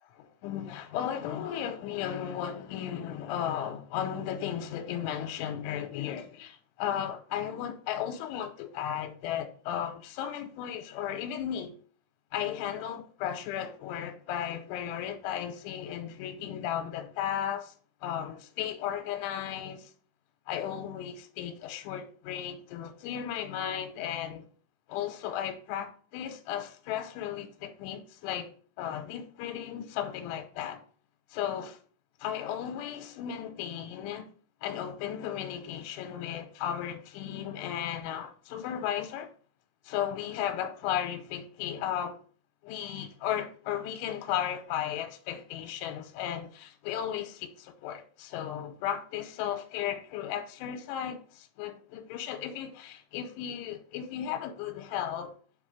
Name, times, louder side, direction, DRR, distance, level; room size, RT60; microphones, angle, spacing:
voice 1, 0.1-11.7 12.3-17.7 18.0-19.9 20.5-24.5 24.9-28.5 28.8-30.8 31.3-31.8 32.2-34.3 34.6-39.3 39.8-42.2 42.6-55.3, left 10 dB, 85° left, 3.1 m, -35 dB
7.8 x 3.0 x 5.9 m
omnidirectional pair, 5.6 m